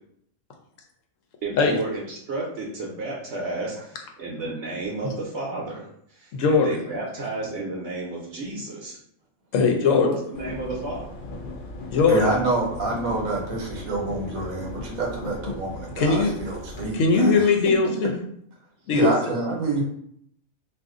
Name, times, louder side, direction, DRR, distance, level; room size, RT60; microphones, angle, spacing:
voice 1, 1.4-9.0 9.9-11.1, right 2 dB, 60° right, -3 dB, 0.9 m, -32 dB
voice 2, 6.3-6.8 9.5-10.2 11.9-12.2 16.0-16.3 16.9-18.1 18.9-19.1, left 4 dB, 70° left, 2 dB, 0.9 m, -20 dB
sound 1, 10.3-16.9, left 2 dB, 90° left, 0.4 m, -37 dB
voice 3, 12.1-17.4 18.9-19.8, right 2 dB, 80° right, 0 dB, 1.1 m, -27 dB
2.5 x 2.4 x 3.6 m, 0.70 s
omnidirectional pair, 1.4 m